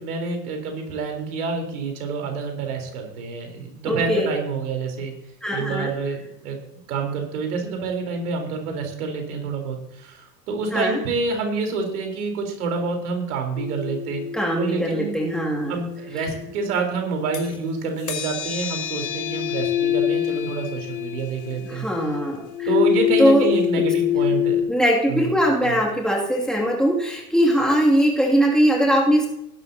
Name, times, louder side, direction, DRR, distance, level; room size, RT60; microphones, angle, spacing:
voice 1, 0.0-5.1 5.5-6.6 6.9-14.2 14.6-15.2 15.7-21.8 22.7-24.6 25.1-25.3 25.6-25.8, right 4 dB, 60° right, 3 dB, 4.0 m, -27 dB
voice 2, 3.8-4.3 5.4-5.9 10.7-11.0 14.3-15.8 21.6-22.7 23.2-23.5 23.8-23.9 24.7-29.3, equal, ahead, -1 dB, 2.5 m, -20 dB
sound 1, 13.6-17.6 18.0-24.6, left 10 dB, 35° left, 3.3 m, -26 dB
20.0 x 11.0 x 2.8 m, 0.81 s
figure-of-eight pair, 90°, 49 cm